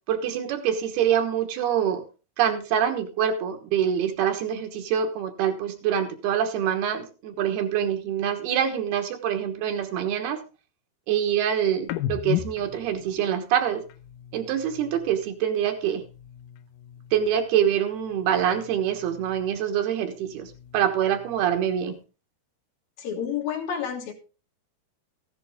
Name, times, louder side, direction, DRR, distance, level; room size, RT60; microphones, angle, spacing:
voice 1, 0.1-2.0 2.4-10.4 11.1-13.8 14.3-16.0 17.1-22.0, right 9 dB, 75° right, 6 dB, 3.2 m, -25 dB
sound 1, 11.8-15.4 15.7-17.6 17.8-19.7 20.1-21.9, left 13 dB, 80° left, 2.0 m, -38 dB
voice 2, 23.0-24.1, left 8 dB, 60° left, 2 dB, 3.4 m, -30 dB
15.0 x 11.0 x 3.6 m, 0.34 s
omnidirectional pair, 4.7 m